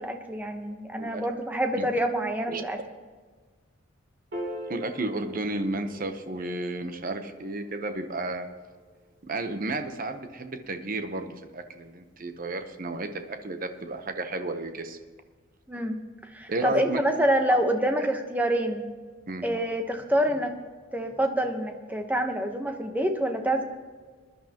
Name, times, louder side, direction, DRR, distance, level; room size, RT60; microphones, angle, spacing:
voice 1, 0.0-2.8 15.7-16.0 16.3-18.9 19.4-20.6 20.9-23.6, right 1 dB, 10° right, 4 dB, 1.0 m, -27 dB
Piano, 4.3-10.9, equal, 60° right, 2.9 m, -44 dB
voice 2, 4.7-8.5 9.2-15.0 16.5-17.0 17.5-17.6 19.3-19.5, right 2 dB, 45° right, 7 dB, 0.9 m, -32 dB
20.5 x 11.0 x 3.0 m, 1.5 s
head